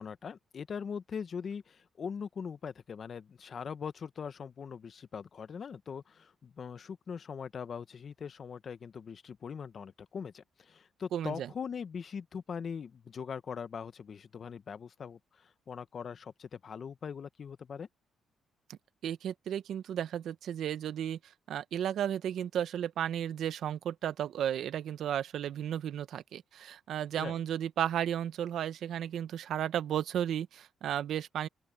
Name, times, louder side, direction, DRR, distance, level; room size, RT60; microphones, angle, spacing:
voice 1, 0.0-17.9 27.1-27.4, left 6 dB, 50° left, 1.1 m, -41 dB
voice 2, 11.1-11.5 18.7-31.5, right 10 dB, 70° right, 1.0 m, -34 dB
open air
cardioid pair, 90°, 0 cm